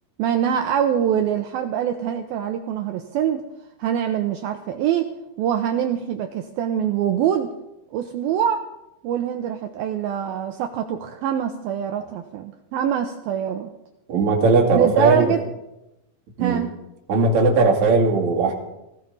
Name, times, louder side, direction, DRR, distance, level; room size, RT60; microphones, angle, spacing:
voice 1, 0.2-3.4 3.8-5.1 5.4-7.5 7.9-8.6 9.0-13.7 14.7-15.4 16.4-16.7, right 9 dB, 85° right, 5 dB, 2.1 m, -24 dB
voice 2, 14.1-15.3 16.4-16.7 17.1-18.5, right 3 dB, 45° right, -1 dB, 3.2 m, -18 dB
18.5 x 17.0 x 4.1 m, 0.91 s
omnidirectional pair, 5.2 m